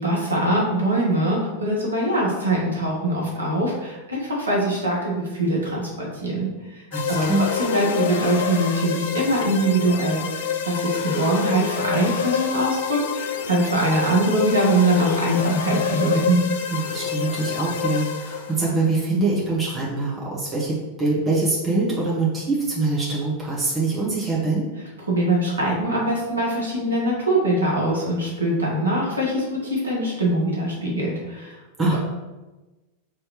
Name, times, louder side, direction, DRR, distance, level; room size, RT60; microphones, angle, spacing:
voice 1, 0.0-6.8 7.1-16.4 25.1-31.6, right 1 dB, 80° right, -3 dB, 1.2 m, -23 dB
sound 1, 6.9-18.7, left 6 dB, 55° left, 0.4 m, -27 dB
voice 2, 6.9-7.5 16.7-24.6 31.8-32.0, right 3 dB, 15° right, -7 dB, 1.3 m, -24 dB
4.7 x 3.1 x 3.0 m, 1.1 s
figure-of-eight pair, 90°, 0 cm